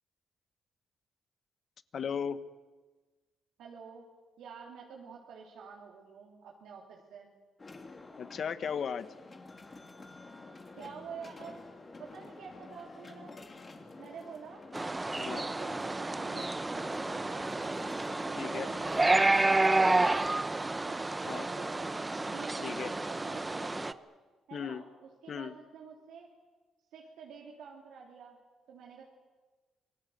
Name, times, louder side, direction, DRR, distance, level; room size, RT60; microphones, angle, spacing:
voice 1, 1.9-2.4 8.2-9.1 15.2-15.4 18.4-18.7 21.2-21.5 22.6-22.9 24.5-24.8 25.3-25.5, left 7 dB, 55° left, 13 dB, 1.3 m, -36 dB
voice 2, 3.6-4.0 4.4-7.4 10.7-11.6 12.0-13.3 14.0-14.7 15.2-17.8 18.3-20.4 20.8-21.9 22.2-24.0 24.5-26.3 26.9-28.4 28.7-29.0, right 6 dB, 80° right, -1 dB, 3.4 m, -48 dB
sound 1, 7.6-19.6, left 3 dB, 30° left, 3.1 m, -49 dB
sound 2, 14.7-23.9, right 2 dB, 20° right, 0.9 m, -30 dB
27.5 x 19.5 x 8.1 m, 1.3 s
cardioid pair, 90°, 0 cm